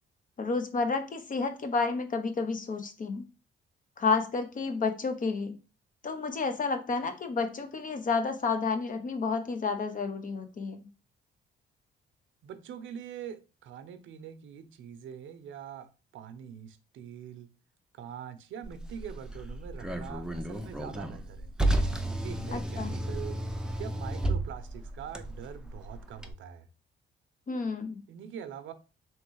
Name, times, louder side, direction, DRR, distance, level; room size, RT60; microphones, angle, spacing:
voice 1, 0.4-3.2 4.0-5.5 6.0-10.9 22.5-22.9 27.5-28.0, left 4 dB, 40° left, 0.9 m, -30 dB
voice 2, 12.4-17.5 17.9-21.5 22.0-23.4 23.8-26.7 28.1-28.7, right 8 dB, 75° right, 0.6 m, -44 dB
Car, 18.6-26.3, right 1 dB, 5° right, 0.6 m, -33 dB
3.3 x 3.1 x 4.6 m
cardioid pair, 90°, 20 cm